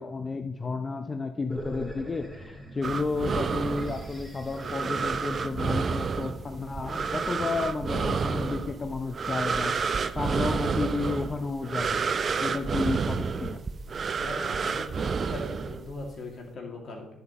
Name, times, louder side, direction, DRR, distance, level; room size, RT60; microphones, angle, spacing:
voice 1, 0.0-12.0 12.4-13.6, left 3 dB, 30° left, 8 dB, 0.7 m, -32 dB
sound 1, 1.5-7.5, equal, 15° left, 2.9 m, -43 dB
sound 2, 2.8-16.1, right 5 dB, 45° right, 0.5 m, -30 dB
voice 2, 14.1-17.1, left 2 dB, 50° left, 1 dB, 2.3 m, -40 dB
11.0 x 9.4 x 3.0 m, 0.93 s
figure-of-eight pair, 45°, 0 cm